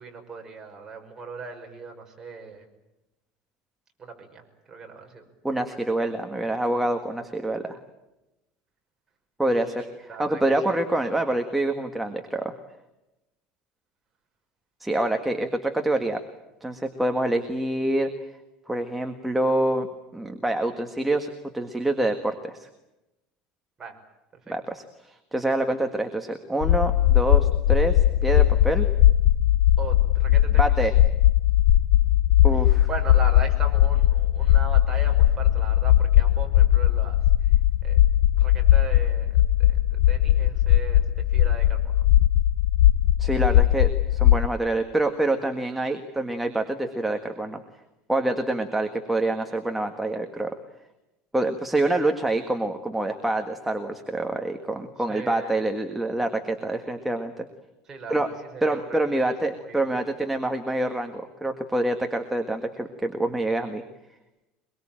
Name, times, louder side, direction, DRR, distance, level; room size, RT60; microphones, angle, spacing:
voice 1, 0.0-2.7 4.0-5.2 5.5-5.6 9.8-10.4 10.7-10.8 23.8-24.0 29.8-30.9 32.5-37.5 37.8-38.0 38.3-42.0 55.1-55.5 57.9-58.3 58.5-59.0 59.3-59.9, right 5 dB, 20° right, 2 dB, 5.6 m, -39 dB
voice 2, 5.4-7.8 9.4-12.5 14.8-16.2 16.6-18.1 18.7-19.9 20.1-22.7 24.5-28.9 30.6-30.9 32.4-32.9 43.2-47.6 48.1-50.6 51.3-57.4 58.1-58.3 58.6-63.8, right 1 dB, 5° right, 5 dB, 1.7 m, -26 dB
sound 1, 26.6-44.5, left 13 dB, 85° left, 1.1 m, -19 dB
24.5 x 22.5 x 8.9 m, 0.96 s
cardioid pair, 150°, 3 cm